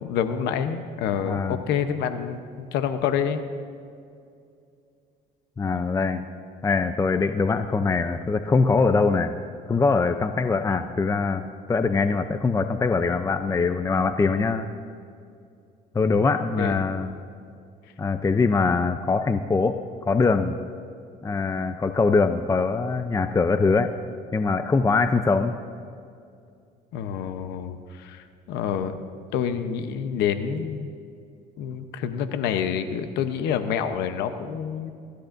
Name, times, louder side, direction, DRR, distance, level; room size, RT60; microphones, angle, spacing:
voice 1, 0.0-3.4 16.6-16.8 26.9-29.0 29.3-30.9 31.6-34.9, left 8 dB, 90° left, 9 dB, 0.9 m, -27 dB
voice 2, 1.3-1.6 5.6-6.2 6.6-9.3 9.7-11.4 11.7-14.7 15.9-17.1 18.0-20.6 21.2-23.9 24.3-25.6, left 4 dB, 20° left, 8 dB, 0.5 m, -22 dB
24.5 x 13.0 x 2.6 m, 2.4 s
cardioid pair, 110°, 17 cm